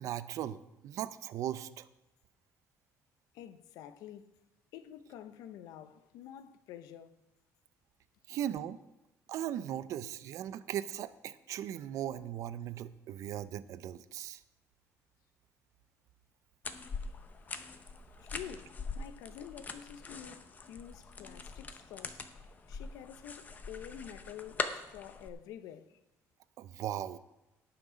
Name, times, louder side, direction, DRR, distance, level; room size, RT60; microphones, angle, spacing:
voice 1, 0.0-1.9 8.3-8.8 9.3-14.4 26.6-27.2, right 11 dB, 60° right, 0.6 m, -38 dB
voice 2, 3.3-4.3 4.7-7.2 18.2-22.2 22.7-26.0, left 10 dB, 85° left, 0.8 m, -48 dB
sound 1, 16.6-25.3, left 4 dB, 25° left, 0.8 m, -42 dB
17.5 x 6.0 x 5.1 m
cardioid pair, 150°, 6 cm